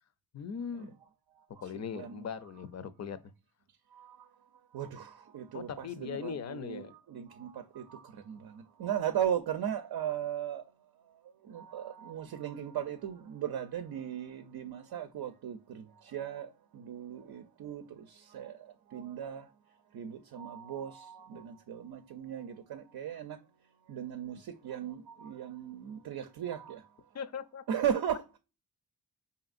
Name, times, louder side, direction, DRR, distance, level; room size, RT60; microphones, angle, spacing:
voice 1, 0.3-0.9 1.6-3.2 5.5-6.9 27.1-27.6, left 7 dB, 45° left, 0.5 m, -39 dB
voice 2, 1.7-2.2 3.9-4.3 4.7-10.6 11.4-19.5 19.9-23.4 23.9-26.9 27.7-28.2, right 9 dB, 70° right, 0.5 m, -37 dB
4.9 x 2.7 x 2.4 m
cardioid pair, 70°, 39 cm